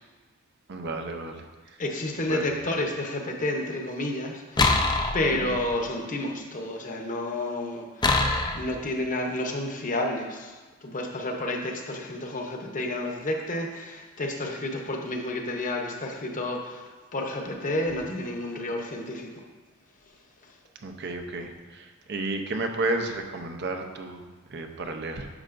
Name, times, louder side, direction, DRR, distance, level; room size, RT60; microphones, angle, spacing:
voice 1, 0.7-1.4 2.3-2.5 5.3-5.6 20.8-24.2 24.5-25.3, right 2 dB, 55° right, 5 dB, 0.7 m, -32 dB
voice 2, 1.8-4.9 5.1-8.3 8.5-16.9 17.1-19.3, left 1 dB, 40° left, 2 dB, 0.8 m, -30 dB
sound 1, 4.6-5.8 8.0-8.8, left 3 dB, 20° left, 0.5 m, -24 dB
9.8 x 6.5 x 2.6 m, 1.3 s
head